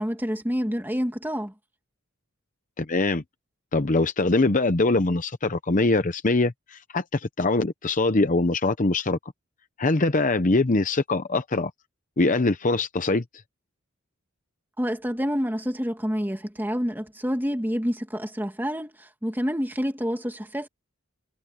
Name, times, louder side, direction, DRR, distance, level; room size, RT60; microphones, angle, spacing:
voice 1, 0.0-1.5 14.8-20.7, equal, 10° right, 2.4 m, -28 dB
voice 2, 2.8-3.2 3.7-9.2 9.8-11.7 12.2-13.2, left 2 dB, 40° left, 0.8 m, -23 dB
head